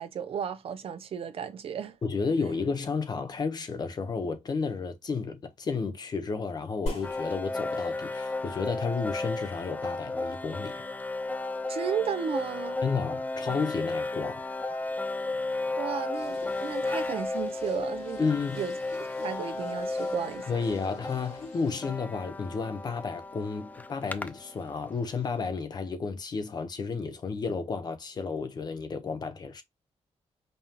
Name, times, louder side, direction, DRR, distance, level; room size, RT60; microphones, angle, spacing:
voice 1, 0.0-2.0 11.7-12.8 15.8-18.3 18.6-18.7 19.0-20.5, right 8 dB, 55° right, 0.6 m, -34 dB
voice 2, 2.0-10.8 12.8-14.4 18.2-18.6 20.5-29.6, left 4 dB, 35° left, 0.7 m, -32 dB
sound 1, 7.0-25.0, left 2 dB, 15° left, 0.4 m, -34 dB
sound 2, 14.9-15.6, equal, 65° left, 2.6 m, -45 dB
sound 3, 16.1-21.9, left 4 dB, 80° left, 2.5 m, -50 dB
5.4 x 2.3 x 2.8 m
wide cardioid pair, 165°, 11 cm